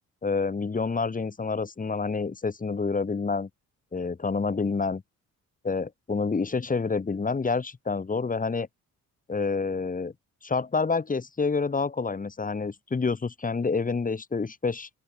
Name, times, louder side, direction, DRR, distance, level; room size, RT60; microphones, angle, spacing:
voice 1, 0.2-3.5 3.9-5.0 5.6-8.7 9.3-10.1 10.4-14.9, left 4 dB, 25° left, 2.5 m, -28 dB
open air
cardioid pair, 90°, 30 cm